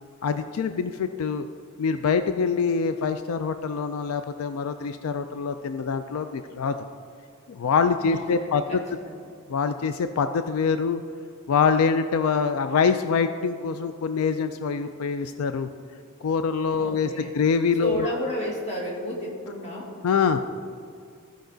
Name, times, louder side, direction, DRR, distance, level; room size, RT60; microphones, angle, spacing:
voice 1, 0.2-1.5 1.8-6.8 7.5-8.6 9.5-11.0 11.5-15.7 16.2-17.1 17.3-18.1 20.0-20.4, left 5 dB, 85° left, 9 dB, 0.4 m, -24 dB
voice 2, 8.0-9.3 16.8-17.3 17.8-20.0, equal, 30° left, -3 dB, 1.8 m, -33 dB
14.5 x 5.1 x 3.9 m, 2.3 s
head